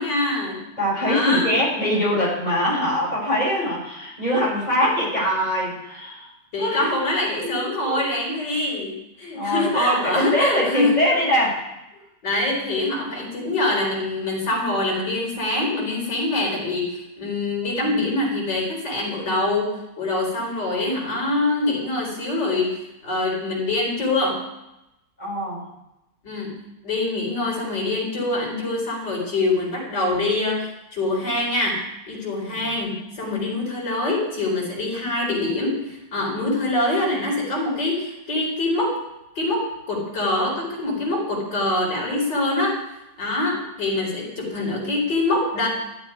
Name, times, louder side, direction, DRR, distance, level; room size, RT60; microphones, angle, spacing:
voice 1, 0.0-0.6 1.0-1.5 6.5-10.9 12.2-24.4 26.2-26.5 26.8-31.8 32.1-39.0 39.3-42.7 43.2-45.7, left 2 dB, 90° left, -3 dB, 5.2 m, -24 dB
voice 2, 0.8-6.3 6.6-7.0 7.4-8.0 9.3-11.6 25.2-25.6 32.3-32.7, equal, 25° left, -5 dB, 6.4 m, -23 dB
13.5 x 8.2 x 9.5 m, 0.91 s
omnidirectional pair, 1.8 m